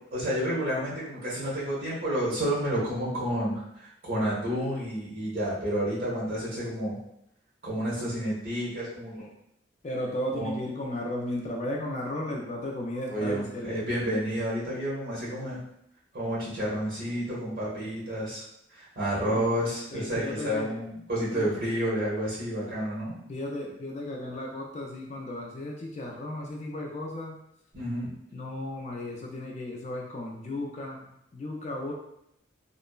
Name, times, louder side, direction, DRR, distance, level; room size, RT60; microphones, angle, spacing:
voice 1, 0.1-7.0 7.6-9.3 10.3-10.6 13.1-15.6 16.1-18.4 18.7-23.2 27.7-28.1, equal, 50° right, -9 dB, 1.3 m, -30 dB
voice 2, 9.8-14.1 19.1-19.5 19.9-20.7 21.3-21.5 23.3-27.4 28.3-31.9, left 1 dB, 35° left, -1 dB, 0.3 m, -35 dB
3.0 x 2.0 x 2.3 m, 0.78 s
head